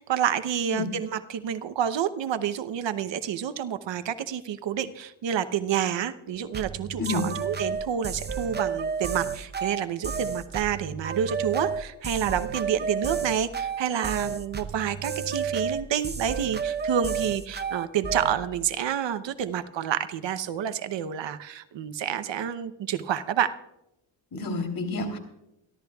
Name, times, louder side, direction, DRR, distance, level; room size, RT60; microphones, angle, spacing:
voice 1, 0.0-23.6, right 9 dB, 60° right, 11 dB, 0.9 m, -29 dB
sound 1, 6.5-18.4, right 6 dB, 20° right, 0.8 m, -31 dB
voice 2, 24.3-25.2, left 3 dB, 45° left, 4 dB, 3.2 m, -29 dB
28.0 x 12.5 x 2.3 m, 0.85 s
cardioid pair, 110°, 48 cm